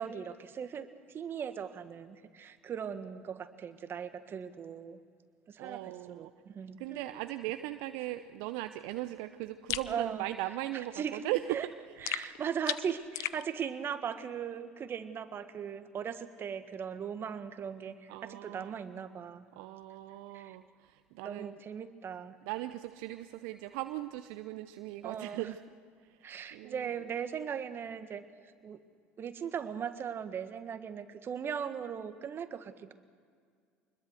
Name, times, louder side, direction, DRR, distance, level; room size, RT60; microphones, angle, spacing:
voice 1, 0.0-5.0 5.5-7.1 9.9-10.2 10.7-11.2 11.5-11.7 12.0-19.4 20.3-20.5 21.2-22.4 25.0-25.4 26.2-28.2 28.6-28.8 29.2-32.9, right 7 dB, 40° right, 9 dB, 1.6 m, -39 dB
voice 2, 5.6-6.3 6.8-11.7 18.1-18.8 19.5-21.5 22.4-25.6 26.1-26.9, right 15 dB, 70° right, 10 dB, 0.7 m, -38 dB
sound 1, 9.7-9.9 12.1-13.4, left 17 dB, 65° left, 0.7 m, -36 dB
25.0 x 21.0 x 6.5 m, 2.1 s
hypercardioid pair, 65°, 6 cm